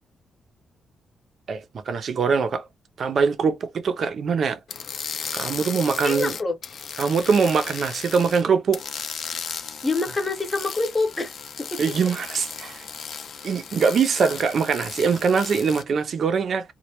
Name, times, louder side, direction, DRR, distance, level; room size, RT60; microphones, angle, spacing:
voice 1, 1.5-2.7 3.0-4.6 5.3-6.3 7.0-8.8 11.8-12.9 13.4-16.7, right 5 dB, 50° right, 0.4 m, -23 dB
sound 1, 4.7-8.4 8.7-15.8, left 6 dB, 55° left, 0.4 m, -35 dB
voice 2, 6.0-6.6 9.8-11.3 11.6-11.9, left 3 dB, 20° left, 0.7 m, -26 dB
2.1 x 2.1 x 2.8 m
cardioid pair, 135°, 0 cm